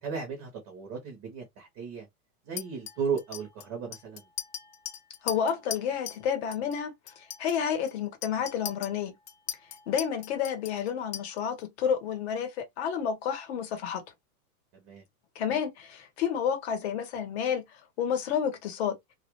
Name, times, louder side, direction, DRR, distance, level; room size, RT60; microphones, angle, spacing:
voice 1, 0.0-2.1 2.5-4.2 14.8-15.0, right 6 dB, 25° right, 0.6 m, -35 dB
Chink clink, 2.6-6.3 6.5-6.8 7.1-11.6, left 10 dB, 80° left, 0.8 m, -40 dB
voice 2, 5.2-9.2 9.9-14.0 15.3-17.6 18.0-18.9, left 8 dB, 45° left, 0.9 m, -30 dB
2.3 x 2.1 x 2.8 m
supercardioid pair, 165°, 45 cm